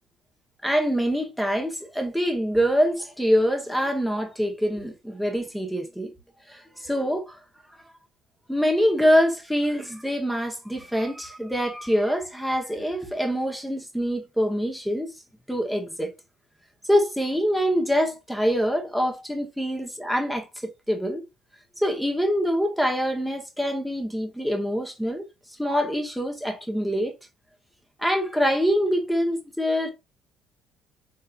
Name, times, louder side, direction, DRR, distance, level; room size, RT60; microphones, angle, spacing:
voice 1, 0.6-6.1 6.5-7.4 8.5-15.1 15.5-16.1 16.9-21.2 21.8-25.3 25.6-27.1 28.0-29.9, equal, ahead, 0.9 m, -25 dB
3.6 x 2.7 x 2.4 m
cardioid pair, 95°, 0 cm